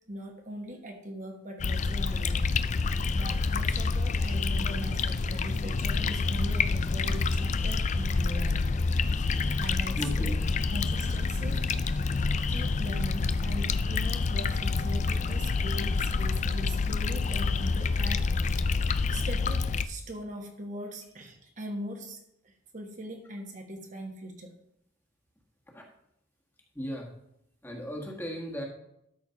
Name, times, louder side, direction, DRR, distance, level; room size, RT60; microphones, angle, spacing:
voice 1, 0.1-2.9 3.1-8.6 9.6-10.3 10.7-11.6 12.5-18.8 19.1-24.6, right 1 dB, 40° right, 3 dB, 1.2 m, -40 dB
sound 1, 1.6-19.8, left 4 dB, 35° left, 0.4 m, -28 dB
voice 2, 10.0-10.5 12.0-12.1 25.7-25.8 26.7-27.1 27.6-28.7, equal, 10° left, 0 dB, 1.5 m, -37 dB
12.5 x 4.4 x 5.7 m, 0.78 s
head